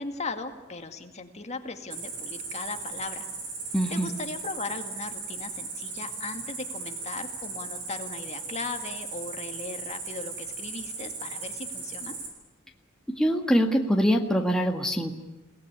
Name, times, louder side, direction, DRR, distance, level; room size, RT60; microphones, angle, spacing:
voice 1, 0.0-3.3 3.9-12.2, left 3 dB, 35° left, 6 dB, 2.1 m, -37 dB
Cricket, 1.9-12.3, right 4 dB, 65° right, 7.8 m, -37 dB
voice 2, 3.7-4.1 13.1-15.1, equal, 5° left, 1 dB, 1.8 m, -24 dB
29.5 x 18.5 x 10.0 m, 1.0 s
head